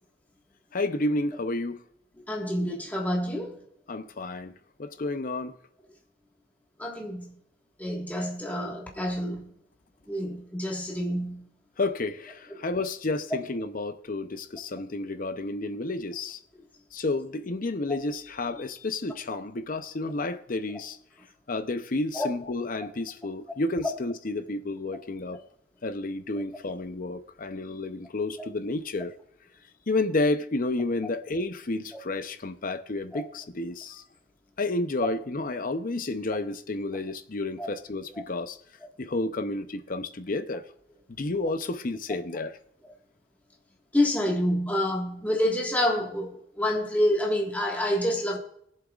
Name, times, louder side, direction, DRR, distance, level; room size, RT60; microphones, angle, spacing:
voice 1, 0.7-1.8 3.9-4.5 4.8-5.6 11.8-16.4 16.9-21.0 21.5-25.4 25.8-29.1 29.9-34.0 34.6-38.6 39.0-40.6 41.1-42.6, left 2 dB, 45° left, 0.6 m, -31 dB
voice 2, 2.3-3.6 6.8-7.3 7.8-9.5 10.1-11.5 22.1-22.3 25.3-25.4 33.1-33.2 37.6-37.7 43.9-48.4, left 1 dB, 10° left, 1.6 m, -27 dB
21.5 x 7.5 x 2.4 m
head